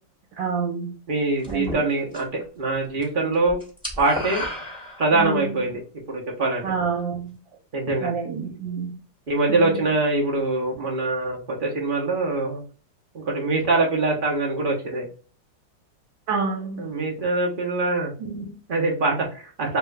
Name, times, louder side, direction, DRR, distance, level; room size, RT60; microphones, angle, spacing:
voice 1, 0.4-0.9 1.5-1.8 5.1-5.6 6.6-7.4 8.0-8.9 9.5-9.9 16.3-16.8 18.2-18.5, right 5 dB, 75° right, 0 dB, 1.4 m, -28 dB
voice 2, 1.1-2.3 2.6-3.6 4.0-4.4 5.0-5.8 6.1-6.6 7.7-8.1 9.3-12.6 13.1-15.1 16.8-18.1 18.7-19.8, right 2 dB, 50° right, -1 dB, 0.6 m, -23 dB
sound 1, 1.4-2.4 2.7-3.1 3.3-5.4, left 1 dB, 5° right, 1.3 m, -33 dB
3.2 x 2.3 x 3.2 m, 0.38 s
omnidirectional pair, 2.1 m